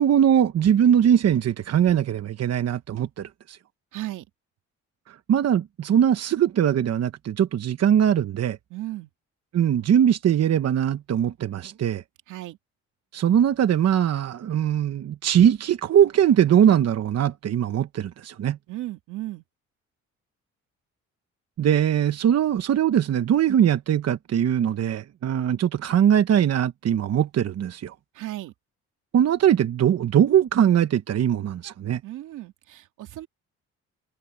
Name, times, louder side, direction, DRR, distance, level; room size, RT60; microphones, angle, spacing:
voice 1, 0.0-3.6 5.1-8.6 9.5-12.0 13.1-18.6 21.6-27.9 29.1-32.0, right 9 dB, 55° right, 1.1 m, -21 dB
voice 2, 3.9-4.2 8.7-9.1 12.3-12.6 18.7-19.4 28.1-28.5 32.0-33.3, right 16 dB, 90° right, 2.5 m, -35 dB
cardioid pair, 90°, 30 cm